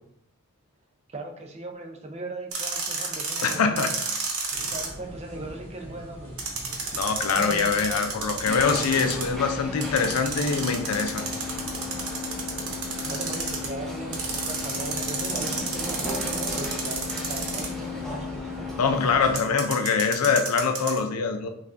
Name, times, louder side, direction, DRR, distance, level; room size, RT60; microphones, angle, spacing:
voice 1, 1.1-3.9 4.6-6.4 7.3-7.9 13.0-18.8, right 2 dB, 30° right, 4 dB, 0.4 m, -38 dB
sound 1, 2.5-4.9 6.4-9.3 9.8-13.7 14.1-17.9 19.4-21.0, right 4 dB, 80° right, 0.9 m, -31 dB
voice 2, 3.4-4.0 6.9-11.3 18.8-21.5, left 5 dB, 85° left, 7 dB, 0.4 m, -24 dB
sound 2, 4.5-9.9, equal, 25° left, 1.1 m, -43 dB
sound 3, 8.5-19.3, left 3 dB, ahead, 1.0 m, -34 dB
5.5 x 2.4 x 2.5 m, 0.77 s
head